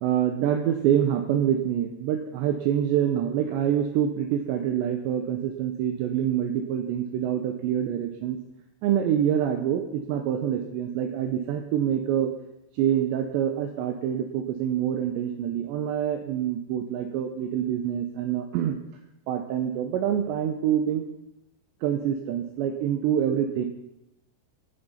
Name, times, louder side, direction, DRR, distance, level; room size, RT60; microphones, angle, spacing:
voice 1, 0.0-8.4 8.8-12.3 12.7-18.8 19.3-21.1 21.8-23.7, right 9 dB, 75° right, 5 dB, 2.8 m, -26 dB
19.5 x 7.3 x 5.6 m, 0.84 s
omnidirectional pair, 5.7 m